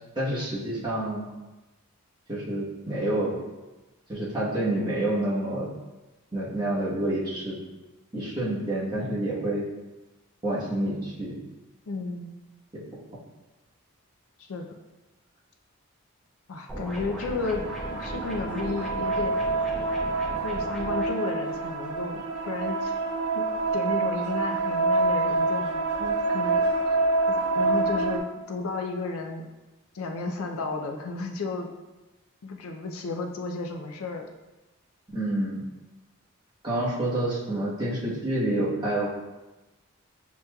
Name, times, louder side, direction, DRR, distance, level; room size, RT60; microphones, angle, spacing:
voice 1, 0.2-1.3 2.3-3.4 4.1-5.7 6.3-7.6 8.1-9.6 10.4-11.4 12.7-13.0 35.1-35.6 36.6-39.1, right 1 dB, 20° right, -8 dB, 1.0 m, -28 dB
voice 2, 11.9-12.4 14.4-14.6 16.5-17.6 18.0-19.4 20.4-23.0 23.3-23.5 23.7-26.6 26.9-27.0 27.3-29.5 29.9-31.7 32.4-34.3, left 3 dB, 75° left, 3 dB, 0.4 m, -33 dB
sound 1, 16.7-21.1, equal, ahead, 0.7 m, -37 dB
sound 2, 17.3-28.2, right 3 dB, 90° right, 0.5 m, -27 dB
6.5 x 2.9 x 2.2 m, 1.1 s
head